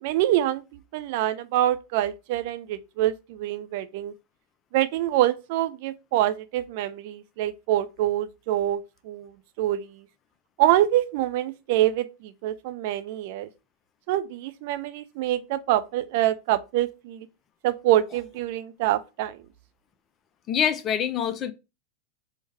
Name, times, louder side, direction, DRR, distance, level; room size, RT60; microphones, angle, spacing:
voice 1, 0.0-4.1 4.7-10.1 10.6-13.5 14.1-17.3 17.6-19.4, right 13 dB, 50° right, 0.3 m, -25 dB
voice 2, 20.5-21.5, left 8 dB, 30° left, 0.4 m, -25 dB
4.6 x 2.1 x 3.1 m
figure-of-eight pair, 90°, 0 cm